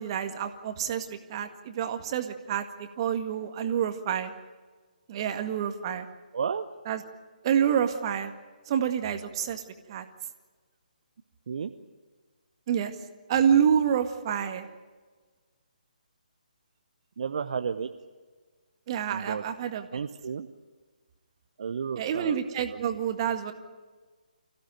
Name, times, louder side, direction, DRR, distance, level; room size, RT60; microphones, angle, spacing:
voice 1, 0.0-4.3 5.1-6.1 6.9-7.0 7.4-8.3 8.7-9.6 9.9-10.1 12.7-12.9 13.3-14.7 18.9-19.8 22.0-23.5, right 8 dB, 35° right, 7 dB, 1.9 m, -27 dB
voice 2, 6.3-6.7 11.5-11.7 17.2-17.9 19.1-19.4 19.9-20.5 21.6-22.4 22.7-23.0, right 6 dB, 50° right, 7 dB, 1.0 m, -32 dB
26.5 x 16.0 x 9.2 m, 1.4 s
figure-of-eight pair, 140°, 5 cm